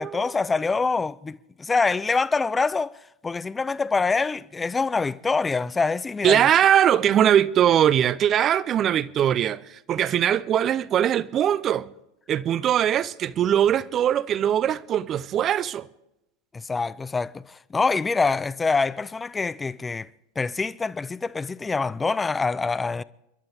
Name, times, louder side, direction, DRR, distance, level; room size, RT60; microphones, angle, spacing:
voice 1, 0.0-6.5 16.5-20.1 20.4-23.0, left 4 dB, 15° left, 0.5 m, -25 dB
voice 2, 6.2-11.9 12.3-15.9, right 10 dB, 40° right, 0.6 m, -21 dB
30.0 x 11.5 x 3.5 m
hypercardioid pair, 95°, 0 cm